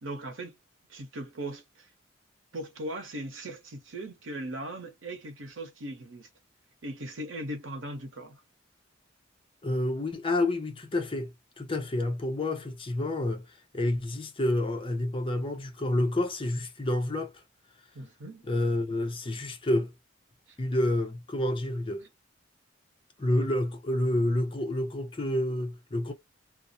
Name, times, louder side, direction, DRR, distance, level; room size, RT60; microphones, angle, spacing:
voice 1, 0.0-0.6 0.9-1.9 2.5-6.3 6.8-8.4 17.9-18.5 20.5-20.6 22.0-22.1, right 1 dB, 90° right, 0.8 m, -39 dB
voice 2, 9.6-13.5 13.7-17.3 18.5-19.9 20.6-22.0 23.2-26.1, left 1 dB, 25° left, 0.6 m, -29 dB
2.3 x 2.0 x 2.6 m
head